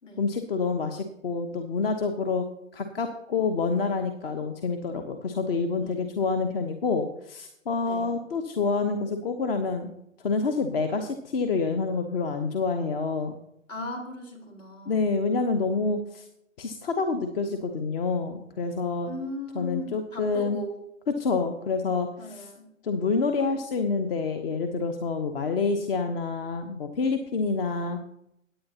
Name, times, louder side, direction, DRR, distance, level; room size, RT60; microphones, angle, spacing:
voice 1, 0.2-2.4 2.7-9.9 10.2-13.3 14.9-16.3 16.6-19.1 19.5-20.6 21.2-22.5 22.8-28.0, left 4 dB, 45° left, 7 dB, 1.1 m, -27 dB
voice 2, 13.7-15.2 19.1-20.7 22.2-22.7, left 1 dB, 70° left, 2 dB, 4.2 m, -38 dB
17.5 x 9.0 x 2.9 m, 0.78 s
figure-of-eight pair, 125°, 40 cm